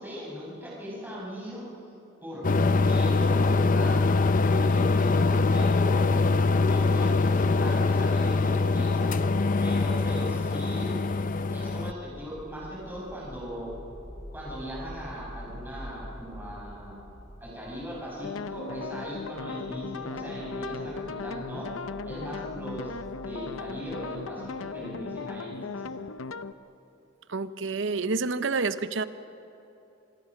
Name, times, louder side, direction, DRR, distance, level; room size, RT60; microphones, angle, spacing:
voice 1, 0.0-1.6 2.2-2.4 2.8-4.0 4.4-6.4 6.6-9.1 9.6-11.3 11.5-13.7 14.3-17.0 17.4-21.7 22.0-22.9 23.2-25.9, equal, 10° right, -5 dB, 5.9 m, -39 dB
sound 1, 2.4-11.9, left 3 dB, 40° left, 0.6 m, -23 dB
sound 2, 11.7-26.1, equal, 25° left, 2.8 m, -46 dB
sound 3, 18.2-26.5, left 4 dB, 80° left, 0.7 m, -37 dB
voice 2, 27.3-29.0, right 4 dB, 65° right, 13 dB, 0.8 m, -28 dB
27.0 x 20.5 x 6.0 m, 2.9 s
head